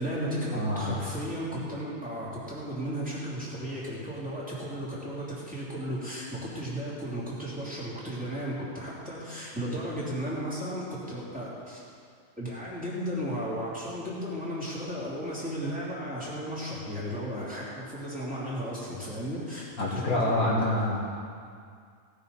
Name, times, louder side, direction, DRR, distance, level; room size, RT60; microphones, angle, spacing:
voice 1, 0.0-11.8 12.4-21.0, equal, 5° right, -8 dB, 3.5 m, -35 dB
voice 2, 0.5-0.9 19.8-21.0, left 1 dB, 85° left, -7 dB, 2.1 m, -26 dB
18.0 x 9.8 x 4.3 m, 2.2 s
omnidirectional pair, 1.5 m